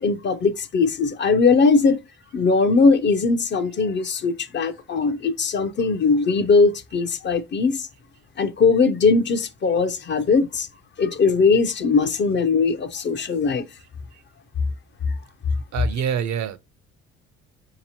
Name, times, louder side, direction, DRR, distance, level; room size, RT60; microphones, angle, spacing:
voice 1, 0.0-2.0 2.3-7.9 8.4-10.7 11.0-13.6, left 4 dB, 40° left, 0.5 m, -20 dB
voice 2, 15.7-16.6, right 8 dB, 65° right, 0.5 m, -25 dB
4.2 x 2.9 x 2.8 m
cardioid pair, 90°, 30 cm